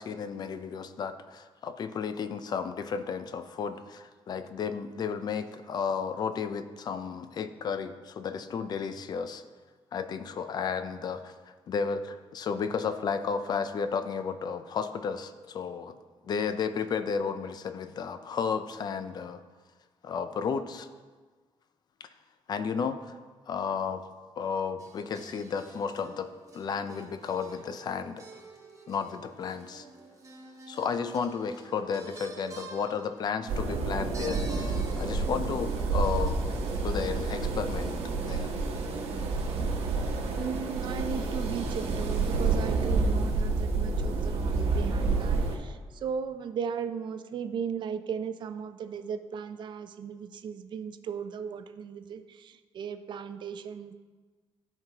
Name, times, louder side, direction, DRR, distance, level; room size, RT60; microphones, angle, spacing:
voice 1, 0.0-9.4 9.9-11.3 11.7-16.0 16.2-19.4 20.0-20.9 22.0-22.1 22.5-23.2 23.5-24.0 24.4-26.3 26.5-28.2 28.9-29.9 30.7-36.4 36.8-38.0 38.2-38.5, left 6 dB, 45° left, 10 dB, 0.4 m, -33 dB
sound 1, 24.8-37.6, right 4 dB, 30° right, 0.8 m, -48 dB
sound 2, 33.5-45.6, right 3 dB, 85° right, 1.1 m, -29 dB
voice 2, 40.4-53.9, right 7 dB, 50° right, 9 dB, 0.5 m, -36 dB
13.5 x 4.5 x 2.9 m, 1.4 s
cardioid pair, 150°, 10 cm